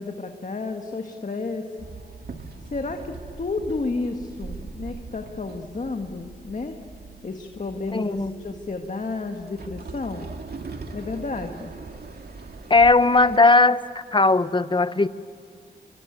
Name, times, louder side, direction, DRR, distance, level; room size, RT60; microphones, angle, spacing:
voice 1, 0.0-1.7 2.7-6.8 7.2-10.3 10.9-11.7, left 3 dB, 40° left, 4 dB, 1.8 m, -31 dB
Walk footsteps / Chatter / Hiss, 1.8-13.4, right 4 dB, 60° right, 2.2 m, -41 dB
voice 2, 7.9-8.3 12.7-13.8 14.1-15.1, left 3 dB, 25° left, 13 dB, 0.9 m, -17 dB
25.0 x 25.0 x 9.3 m, 2.4 s
cardioid pair, 75°, 19 cm